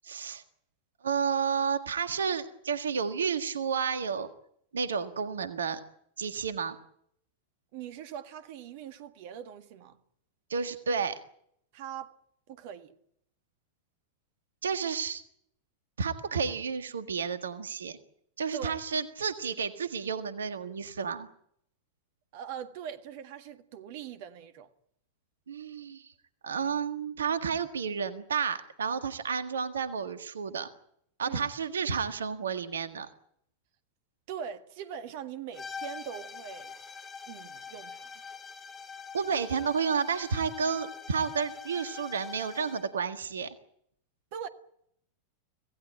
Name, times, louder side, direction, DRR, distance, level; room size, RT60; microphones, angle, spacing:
voice 1, 0.0-0.4 1.0-4.3 4.7-5.8 6.2-6.8 10.5-11.1 14.6-15.2 16.0-18.0 18.4-21.3 25.5-26.1 26.4-30.7 31.2-33.1 39.1-43.5, right 6 dB, 70° right, 1.6 m, -31 dB
voice 2, 7.7-10.0 11.7-12.2 12.5-12.9 18.5-18.8 22.3-24.7 31.2-31.5 34.3-36.8 37.3-38.2 44.3-44.5, right 8 dB, 50° right, 1.7 m, -41 dB
sound 1, 35.5-43.0, left 5 dB, 20° left, 3.5 m, -44 dB
26.0 x 17.5 x 8.9 m
figure-of-eight pair, 90°, 0 cm